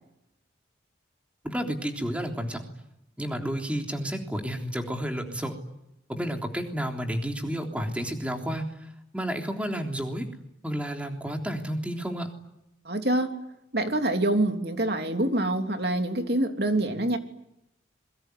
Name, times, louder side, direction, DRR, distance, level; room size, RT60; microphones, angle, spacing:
voice 1, 1.4-2.6 3.2-5.6 6.1-8.7 9.1-10.3 10.6-12.3, equal, 5° right, 3 dB, 3.4 m, -31 dB
voice 2, 12.8-13.4 13.7-17.2, right 1 dB, 55° right, 5 dB, 3.2 m, -26 dB
27.5 x 23.0 x 9.4 m, 0.85 s
head